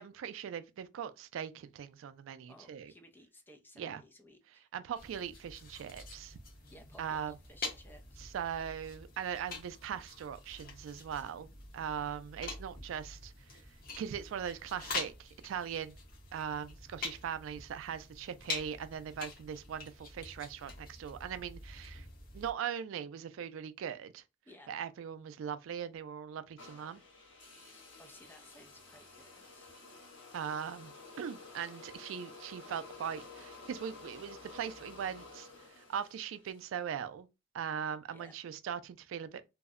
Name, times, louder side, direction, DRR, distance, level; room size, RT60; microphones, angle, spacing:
voice 1, 0.0-2.9 3.8-4.0 4.7-6.4 7.0-7.3 8.2-11.5 11.7-13.3 14.0-16.0 16.3-22.1 22.3-24.2 24.7-27.0 30.3-30.9 31.2-35.5 35.8-37.3 37.5-39.5, right 8 dB, 85° right, 0.3 m, -40 dB
voice 2, 2.5-4.7 6.7-8.3 24.4-24.7 27.6-29.7 38.1-38.3, left 1 dB, 10° left, 0.4 m, -58 dB
sound 1, 4.9-22.5, left 3 dB, 50° left, 0.8 m, -46 dB
sound 2, 26.6-36.8, left 3 dB, 75° left, 1.1 m, -52 dB
2.6 x 2.0 x 2.3 m
head